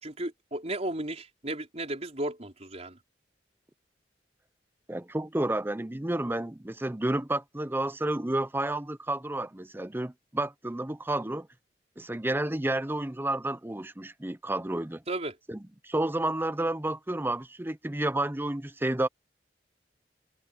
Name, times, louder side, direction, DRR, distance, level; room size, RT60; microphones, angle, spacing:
voice 1, 0.0-3.0 15.1-15.4, right 1 dB, 40° right, 4.7 m, -34 dB
voice 2, 4.9-11.5 12.0-15.0 15.5-19.1, right 1 dB, 10° right, 0.7 m, -31 dB
head